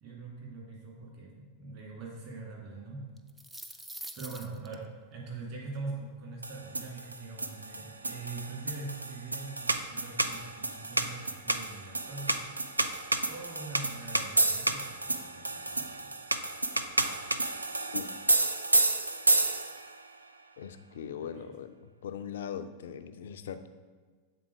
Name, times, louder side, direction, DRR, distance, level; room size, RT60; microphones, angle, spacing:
voice 1, 0.0-3.1 4.1-12.4 13.3-16.1 21.4-21.5, right 3 dB, 40° right, -3 dB, 2.1 m, -43 dB
sound 1, 3.2-4.7, right 1 dB, 5° right, 0.4 m, -44 dB
sound 2, 6.4-19.9, right 2 dB, 80° right, 0.3 m, -30 dB
voice 2, 20.6-23.7, left 8 dB, 60° left, 10 dB, 0.4 m, -40 dB
7.6 x 3.8 x 4.6 m, 1.4 s
figure-of-eight pair, 90°, 0 cm